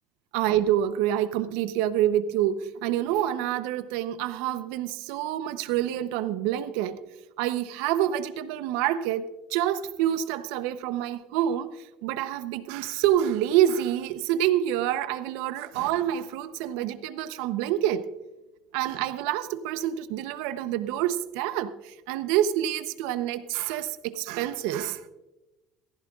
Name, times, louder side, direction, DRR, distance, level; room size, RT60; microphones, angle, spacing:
voice 1, 0.3-7.0 7.4-18.1 18.7-25.1, right 11 dB, 75° right, 0.7 m, -27 dB
18.0 x 15.0 x 2.4 m
cardioid pair, 180°, 0 cm